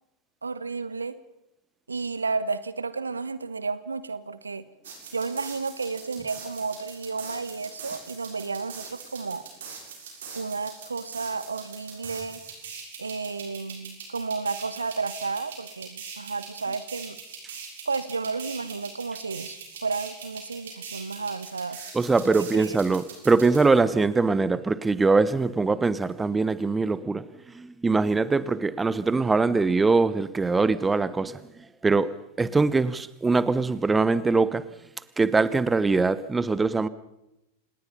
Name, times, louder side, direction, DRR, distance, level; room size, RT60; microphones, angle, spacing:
voice 1, 0.4-1.2 1.9-4.6 5.1-9.4 10.3-12.4 13.0-17.2 17.8-21.8 22.5-22.8, right 4 dB, 75° right, 1.2 m, -32 dB
sound 1, 4.8-23.6, right 5 dB, 60° right, 6.9 m, -42 dB
voice 2, 21.9-27.3 27.5-31.4 31.8-34.7 35.2-36.9, right 3 dB, 10° right, 0.9 m, -22 dB
26.5 x 20.0 x 5.5 m
figure-of-eight pair, 90°, 0 cm